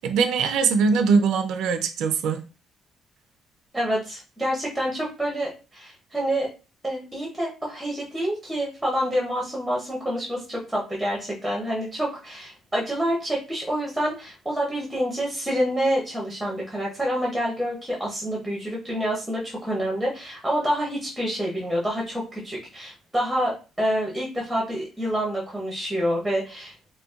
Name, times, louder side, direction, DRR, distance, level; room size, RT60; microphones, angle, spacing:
voice 1, 0.0-2.4, right 5 dB, 75° right, 7 dB, 0.4 m, -21 dB
voice 2, 3.7-6.5 6.8-26.9, equal, ahead, -2 dB, 0.7 m, -27 dB
3.9 x 2.2 x 2.4 m, 0.32 s
cardioid pair, 175°, 0 cm